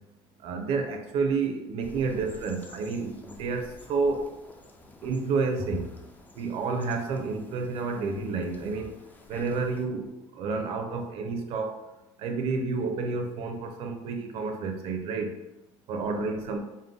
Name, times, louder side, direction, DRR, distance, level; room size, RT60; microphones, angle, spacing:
voice 1, 0.4-4.3 5.0-5.9 6.4-8.9 9.3-10.1 10.3-11.8 12.2-15.3 15.9-16.6, right 4 dB, 60° right, 4 dB, 0.6 m, -30 dB
sound 1, 1.8-9.8, left 2 dB, 15° left, 0.4 m, -46 dB
5.1 x 2.1 x 3.8 m, 0.99 s
cardioid pair, 150°, 11 cm